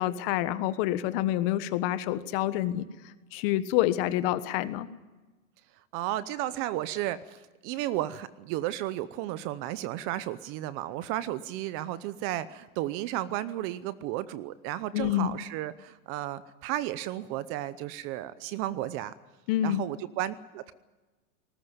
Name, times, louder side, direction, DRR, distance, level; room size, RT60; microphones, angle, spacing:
voice 1, 0.0-4.9 14.9-15.4 19.5-19.8, left 13 dB, 40° left, 13 dB, 1.5 m, -28 dB
voice 2, 5.9-19.1 19.6-20.7, right 14 dB, 30° right, 16 dB, 0.7 m, -33 dB
19.5 x 19.0 x 9.6 m, 1.2 s
supercardioid pair, 145°, 44 cm